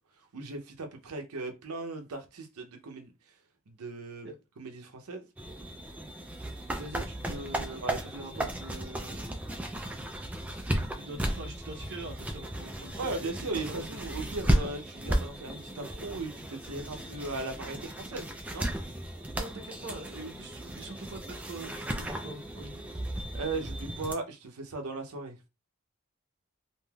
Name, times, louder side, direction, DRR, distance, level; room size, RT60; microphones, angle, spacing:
voice 1, 0.3-3.1 3.7-4.3 4.6-5.2 7.8-8.0 8.3-8.4 13.0-18.7 23.3-25.4, right 3 dB, 90° right, 0.6 m, -37 dB
sound 1, 5.4-24.1, right 1 dB, 5° right, 0.3 m, -35 dB
voice 2, 6.8-7.8 8.1-9.4 10.5-12.9 13.5-14.2 19.3-22.9, right 2 dB, 50° right, 0.7 m, -44 dB
3.2 x 2.6 x 2.3 m
head